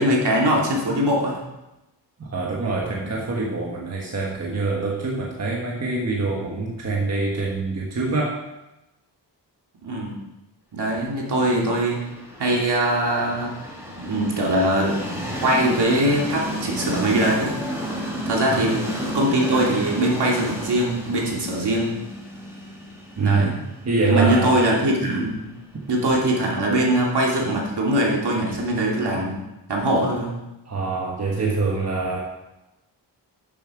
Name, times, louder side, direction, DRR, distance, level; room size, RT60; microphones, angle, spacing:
voice 1, 0.0-1.4 9.8-10.2 10.7-12.0 12.4-13.5 14.0-15.0 15.4-17.5 18.3-21.9 23.2-23.5 24.0-25.4 25.9-29.3 29.7-30.3, right 1 dB, 65° right, -2 dB, 2.8 m, -22 dB
voice 2, 2.2-8.4 18.5-18.6 23.2-23.5 23.8-24.6 30.7-32.2, right 3 dB, 35° right, -2 dB, 1.4 m, -24 dB
Train, 11.3-27.2, equal, 5° right, 2.2 m, -33 dB
12.0 x 7.6 x 5.0 m, 0.98 s
wide cardioid pair, 180°, 43 cm